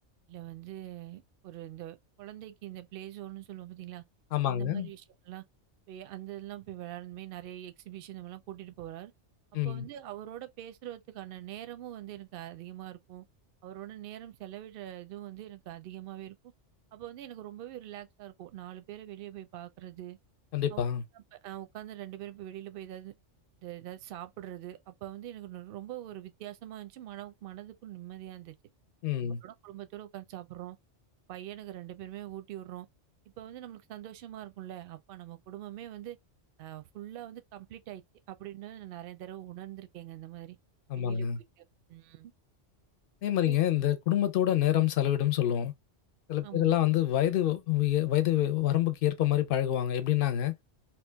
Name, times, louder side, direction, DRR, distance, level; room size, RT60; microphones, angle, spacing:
voice 1, 0.3-4.0 4.5-5.5 5.9-9.1 9.6-13.2 13.6-16.4 16.9-20.2 20.7-20.8 21.2-23.1 23.6-28.5 29.2-30.8 31.3-32.9 33.4-36.2 36.6-38.0 38.3-40.6 40.9-41.6 41.9-42.3 43.4-43.6 46.4-46.7, right 13 dB, 60° right, 0.6 m, -43 dB
voice 2, 4.3-4.9 9.5-9.8 20.5-21.0 29.0-29.4 40.9-41.4 43.2-45.7 46.3-50.5, left 12 dB, 60° left, 0.7 m, -27 dB
2.9 x 2.3 x 3.3 m
omnidirectional pair, 1.2 m